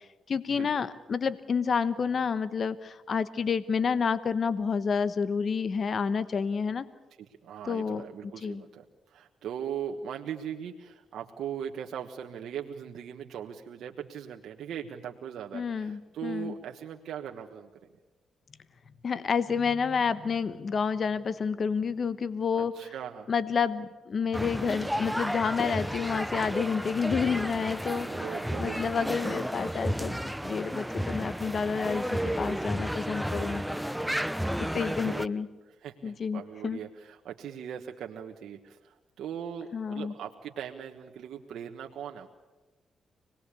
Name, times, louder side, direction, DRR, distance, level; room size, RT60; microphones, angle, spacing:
voice 1, 0.3-6.9 7.7-8.0 8.4-8.6 15.5-16.5 19.0-22.7 23.3-28.2 28.6-33.8 34.6-35.5 36.0-36.8 39.7-40.1, left 6 dB, 55° left, 15 dB, 1.1 m, -29 dB
voice 2, 7.4-17.7 22.5-23.3 28.0-28.9 34.7-35.4 35.7-42.3, right 8 dB, 80° right, 2 dB, 1.4 m, -40 dB
sound 1, 24.3-35.3, equal, ahead, 0.8 m, -32 dB
25.5 x 19.5 x 8.4 m, 1.1 s
cardioid pair, 75°, 0 cm